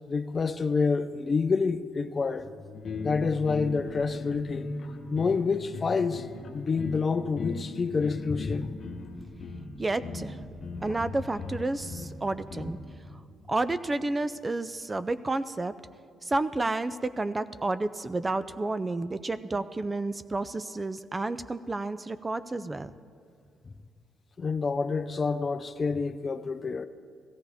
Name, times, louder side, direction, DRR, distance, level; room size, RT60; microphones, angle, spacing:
voice 1, 0.1-2.5 3.0-4.7 5.1-6.3 6.5-8.7 24.4-26.8, left 4 dB, 35° left, 0.5 m, -28 dB
sound 1, 2.4-15.5, left 1 dB, 40° right, 2.5 m, -54 dB
sound 2, 2.7-12.9, left 3 dB, 55° left, 1.1 m, -38 dB
voice 2, 9.8-10.4 10.8-12.8 13.5-15.7 16.2-22.9, right 2 dB, 20° right, 0.4 m, -30 dB
17.0 x 14.0 x 3.5 m
cardioid pair, 90°, 0 cm